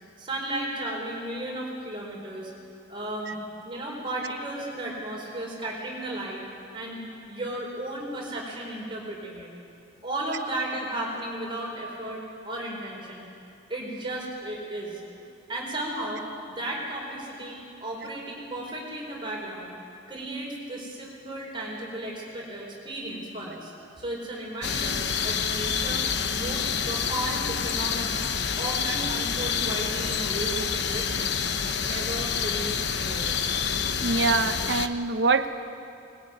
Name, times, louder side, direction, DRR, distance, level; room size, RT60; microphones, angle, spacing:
voice 1, 0.2-2.5 2.9-3.4 3.6-6.4 6.7-7.0 7.3-9.5 10.0-13.2 13.7-15.0 15.5-19.7 20.1-28.3 28.5-31.4 31.6-33.4, right 1 dB, 25° right, -2 dB, 4.7 m, -34 dB
sound 1, 24.6-34.9, left 6 dB, 60° left, 1.0 m, -28 dB
voice 2, 34.0-35.5, right 4 dB, 65° right, 8 dB, 1.1 m, -24 dB
24.0 x 20.5 x 9.4 m, 2.6 s
head